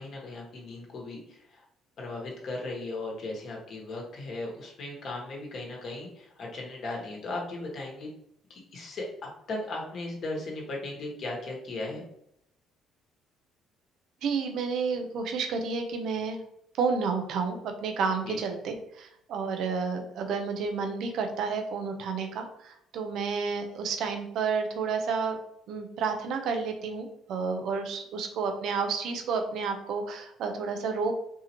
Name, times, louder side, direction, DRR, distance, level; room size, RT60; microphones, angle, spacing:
voice 1, 0.0-1.6 2.0-8.1 8.5-12.0 18.2-18.4, left 2 dB, 55° left, -1 dB, 1.6 m, -37 dB
voice 2, 14.2-16.4 16.8-25.4 25.7-31.2, right 5 dB, 70° right, 5 dB, 0.8 m, -30 dB
4.6 x 2.9 x 3.0 m, 0.74 s
supercardioid pair, 80°, 0 cm